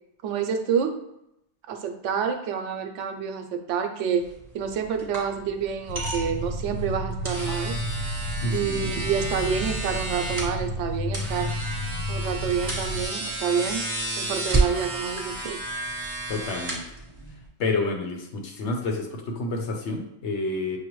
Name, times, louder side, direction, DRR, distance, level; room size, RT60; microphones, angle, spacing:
voice 1, 0.2-0.9 1.7-4.3 4.5-7.7 8.5-11.5 12.1-13.8 14.2-15.6, right 7 dB, 85° right, 5 dB, 0.9 m, -28 dB
sound 1, 4.2-17.5, right 2 dB, 20° right, 1.0 m, -32 dB
sound 2, 5.9-13.0, equal, 60° left, 0.7 m, -31 dB
voice 2, 8.4-8.9 16.3-16.8 17.6-20.8, left 3 dB, 75° left, 2 dB, 1.0 m, -29 dB
6.4 x 2.1 x 3.0 m, 0.83 s
omnidirectional pair, 1.2 m